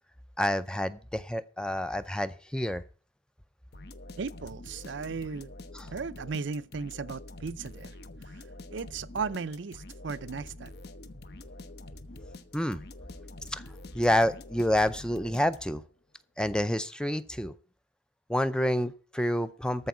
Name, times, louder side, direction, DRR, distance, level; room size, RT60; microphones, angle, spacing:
voice 1, 0.4-2.8 5.7-5.9 12.5-12.8 13.5-13.6 13.9-15.8 16.4-17.5 18.3-19.9, left 1 dB, 5° left, 0.4 m, -28 dB
sound 1, 3.7-15.9, left 2 dB, 55° left, 0.8 m, -46 dB
voice 2, 4.2-5.5 5.9-8.0 8.2-8.4 8.7-10.7, right 5 dB, 65° right, 0.5 m, -36 dB
13.5 x 4.6 x 8.2 m
head